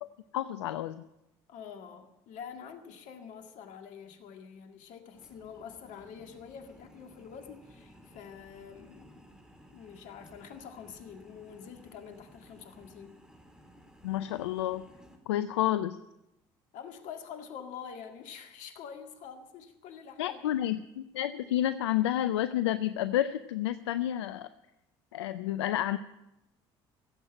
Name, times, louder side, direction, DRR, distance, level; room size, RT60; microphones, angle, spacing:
voice 1, 0.0-1.0 14.0-14.8 15.3-16.0 20.2-24.5 25.1-26.0, left 12 dB, 90° left, 13 dB, 0.4 m, -30 dB
voice 2, 1.5-9.2 9.7-13.2 16.7-20.5, left 7 dB, 65° left, 5 dB, 2.0 m, -46 dB
sound 1, 5.1-15.2, equal, 5° right, 3.8 m, -57 dB
16.5 x 8.0 x 8.8 m, 0.93 s
hypercardioid pair, 65°, 14 cm